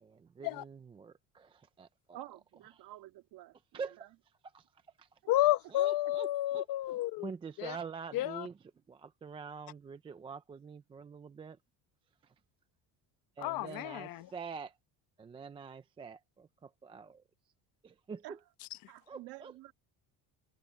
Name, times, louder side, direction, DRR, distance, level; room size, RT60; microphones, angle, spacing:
voice 1, 0.0-2.2 2.7-2.9 3.7-4.1 4.5-6.7 7.2-11.6 12.2-12.3 13.4-14.8 15.2-17.2 17.8-18.4 19.1-19.5, right 5 dB, 15° right, 0.3 m, -46 dB
voice 2, 2.1-4.1 5.2-5.3 13.4-13.8 14.1-14.2 18.2-18.4 18.9-19.7, right 16 dB, 65° right, 2.1 m, -51 dB
voice 3, 5.3-7.3 7.6-7.7 8.1-8.5 13.4-14.2, left 15 dB, 55° left, 0.9 m, -31 dB
cardioid pair, 175°, 40 cm